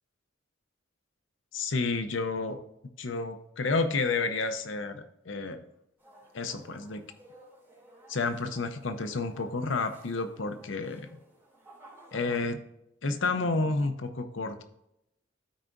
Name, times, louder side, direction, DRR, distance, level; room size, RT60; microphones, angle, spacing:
voice 1, 1.5-2.6 3.0-4.9 5.3-5.6 6.3-7.0 8.1-11.1 12.1-12.6 13.0-14.6, left 3 dB, 70° left, 8 dB, 0.7 m, -30 dB
sound 1, 6.0-12.4, right 1 dB, 10° right, 2.7 m, -55 dB
13.0 x 4.6 x 2.6 m, 0.83 s
head